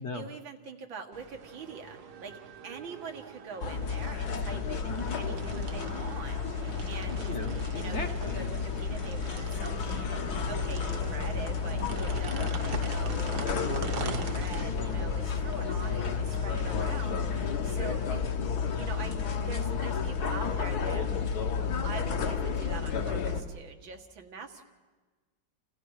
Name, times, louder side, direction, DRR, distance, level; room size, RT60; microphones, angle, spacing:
voice 1, 0.0-7.3 7.7-13.5 13.9-21.1 21.8-24.7, right 5 dB, 85° right, 4 dB, 2.5 m, -44 dB
sound 1, 1.1-16.8, right 6 dB, 60° right, 1.6 m, -43 dB
sound 2, 3.6-23.4, left 6 dB, 60° left, 1.8 m, -31 dB
voice 2, 7.3-8.3, left 3 dB, 40° left, 6 dB, 1.4 m, -37 dB
30.0 x 28.0 x 4.9 m, 1.4 s
omnidirectional pair, 2.0 m